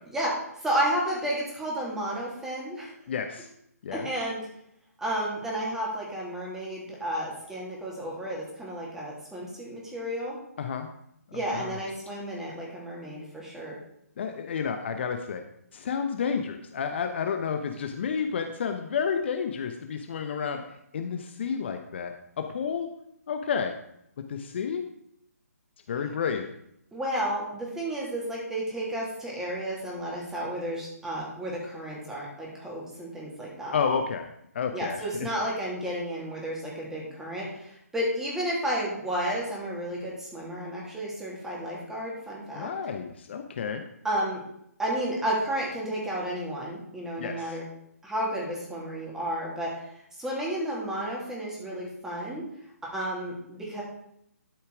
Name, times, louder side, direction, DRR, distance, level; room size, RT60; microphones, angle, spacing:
voice 1, 0.1-2.9 3.9-4.5 5.0-10.4 11.3-13.8 26.9-33.8 34.7-42.7 44.0-44.4 44.8-47.6 48.0-49.8 50.2-52.5 52.8-53.8, right 1 dB, 5° right, -4 dB, 2.9 m, -32 dB
voice 2, 3.1-3.5 3.8-4.1 10.6-10.9 11.3-11.7 14.2-15.4 15.7-20.6 20.9-22.9 23.3-23.7 24.3-24.8 25.9-26.4 33.7-34.3 34.5-35.3 42.6-43.8 47.2-47.6, left 6 dB, 45° left, 6 dB, 0.9 m, -30 dB
12.0 x 5.7 x 4.9 m, 0.74 s
figure-of-eight pair, 145°, 9 cm